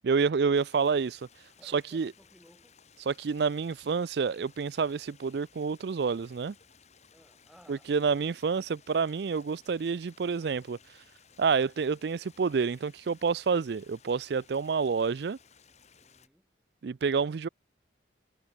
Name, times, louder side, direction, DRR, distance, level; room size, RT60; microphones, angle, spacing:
voice 1, 0.0-1.2 1.7-2.1 3.1-6.5 7.7-10.8 11.4-15.4 16.8-17.5, right 5 dB, 60° right, 0.4 m, -28 dB
Stream, 0.5-16.3, left 6 dB, 35° left, 2.7 m, -60 dB
voice 2, 1.6-2.8 7.1-7.9 16.0-16.5, equal, ahead, 5.6 m, -59 dB
head